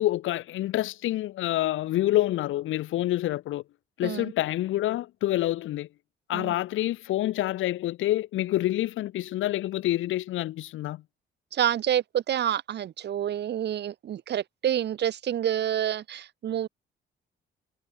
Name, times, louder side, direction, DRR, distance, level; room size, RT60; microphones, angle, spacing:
voice 1, 0.0-3.6 4.0-5.9 6.3-11.0, left 14 dB, 80° left, 1.3 m, -27 dB
voice 2, 4.0-4.3 6.3-6.5 11.5-16.7, right 10 dB, 60° right, 1.0 m, -28 dB
cardioid pair, 90°, 20 cm